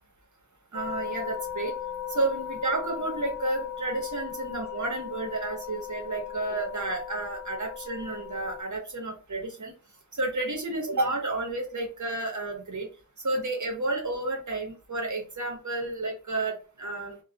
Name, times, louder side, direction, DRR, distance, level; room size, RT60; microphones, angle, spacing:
sound 1, 0.7-8.6, left 10 dB, 50° left, 0.6 m, -37 dB
voice 1, 0.7-1.7 2.1-9.7 10.2-12.9 13.2-17.2, right 2 dB, 70° right, 1 dB, 0.8 m, -31 dB
2.2 x 2.0 x 2.7 m, 0.34 s
wide cardioid pair, 40°, 31 cm